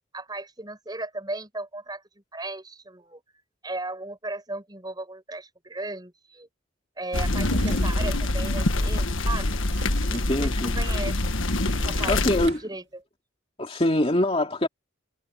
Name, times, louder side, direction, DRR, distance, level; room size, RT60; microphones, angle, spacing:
voice 1, 0.1-3.2 3.6-6.5 7.0-9.6 10.3-11.2 11.8-13.0, right 2 dB, 20° right, 6.5 m, -36 dB
sound 1, 7.1-12.5, left 2 dB, 75° left, 1.6 m, -25 dB
Drawer open or close, 7.2-8.2 8.8-10.3 10.5-10.6 10.9-12.7, right 3 dB, 60° right, 2.5 m, -43 dB
voice 2, 7.7-8.1 10.1-10.8 12.1-12.6 13.6-14.7, left 1 dB, 30° left, 2.5 m, -24 dB
head